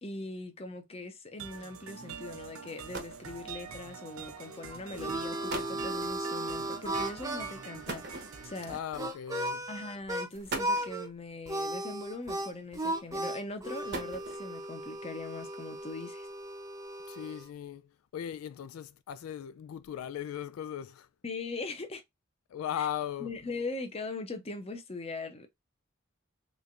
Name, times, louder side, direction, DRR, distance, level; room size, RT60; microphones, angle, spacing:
voice 1, 0.0-8.8 9.7-16.3 21.2-22.0 22.8-22.9 23.2-25.5, left 2 dB, 30° left, 0.7 m, -41 dB
sound 1, 1.4-8.8, right 6 dB, 85° right, 0.7 m, -45 dB
sound 2, 2.7-3.3 4.3-4.5 5.1-5.2 5.5-5.8 7.9-8.7 9.7-9.8 10.3-11.0 12.2-12.7 13.6-14.6, right 2 dB, 55° right, 0.9 m, -40 dB
Harmonica, 4.5-10.3 10.6-11.1 11.5-17.5, right 1 dB, 15° right, 0.6 m, -36 dB
voice 2, 8.7-9.7 17.1-21.1 22.5-23.3, left 9 dB, 85° left, 0.3 m, -38 dB
3.3 x 3.2 x 2.5 m
head